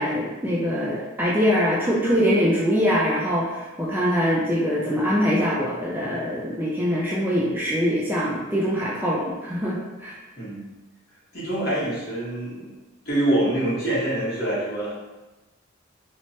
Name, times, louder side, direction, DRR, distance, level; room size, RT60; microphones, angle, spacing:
voice 1, 0.0-10.2, equal, 10° right, -6 dB, 0.3 m, -23 dB
voice 2, 11.3-12.7 13.0-14.9, right 1 dB, 50° left, -9 dB, 1.2 m, -25 dB
3.1 x 2.0 x 2.7 m, 1.1 s
head